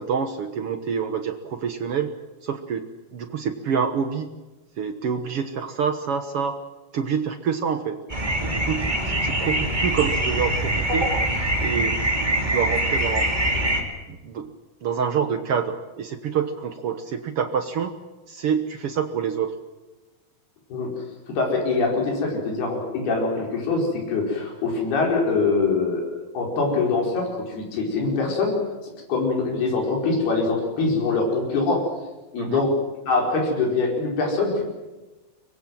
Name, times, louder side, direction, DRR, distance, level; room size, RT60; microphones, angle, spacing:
voice 1, 0.0-2.1 2.4-2.9 3.1-4.3 4.8-6.6 6.9-8.0 8.4-11.1 11.6-12.0 12.4-13.3 14.1-14.5 14.8-17.9 18.3-19.5 32.4-32.6, right 7 dB, 70° right, 8 dB, 1.3 m, -27 dB
sound 1, 8.1-13.8, right 1 dB, 15° right, 2.7 m, -24 dB
voice 2, 21.3-28.6 29.1-31.8 32.3-32.7 33.1-34.6, left 3 dB, 90° left, 0 dB, 6.8 m, -23 dB
24.5 x 22.0 x 7.7 m, 1.1 s
omnidirectional pair, 4.4 m